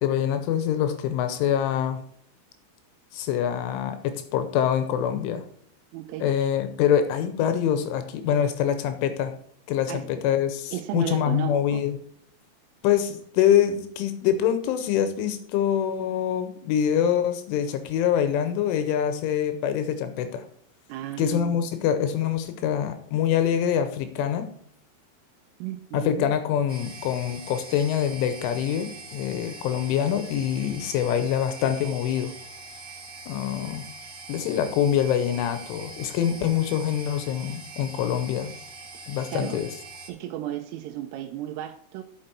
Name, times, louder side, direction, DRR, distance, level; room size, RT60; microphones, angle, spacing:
voice 1, 0.0-2.0 3.1-5.4 6.2-9.3 9.7-12.0 12.8-20.4 21.2-24.5 25.9-32.3 33.3-33.9 34.3-38.5 39.1-39.7, left 9 dB, 80° left, 9 dB, 3.1 m, -25 dB
voice 2, 5.9-6.5 9.9-10.1 10.7-11.8 20.9-21.7 25.6-26.3 39.3-39.6 40.1-42.0, right 12 dB, 85° right, 5 dB, 3.2 m, -34 dB
sound 1, 26.7-40.1, right 3 dB, 50° right, 2.0 m, -43 dB
9.9 x 6.6 x 4.5 m, 0.63 s
omnidirectional pair, 5.8 m